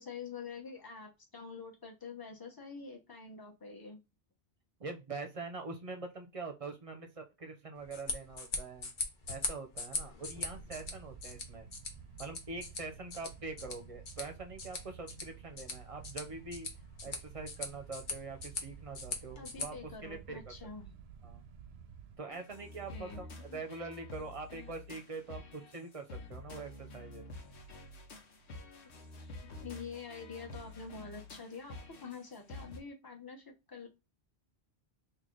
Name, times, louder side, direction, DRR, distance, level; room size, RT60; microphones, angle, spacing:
voice 1, 0.0-4.0 19.4-20.9 22.9-23.6 29.2-31.8 32.0-33.9, left 5 dB, 20° left, 1 dB, 0.9 m, -46 dB
voice 2, 4.8-8.9 9.3-11.7 12.2-16.7 17.0-20.5 21.2-21.4 22.2-27.4, right 3 dB, 35° right, 4 dB, 0.7 m, -44 dB
sound 1, 7.8-19.7, left 4 dB, 50° left, 0.9 m, -42 dB
sound 2, 10.3-22.2, right 7 dB, 75° right, 0.8 m, -52 dB
sound 3, 22.3-32.8, left 2 dB, 90° left, 1.1 m, -49 dB
3.2 x 2.5 x 3.8 m, 0.25 s
omnidirectional pair, 1.1 m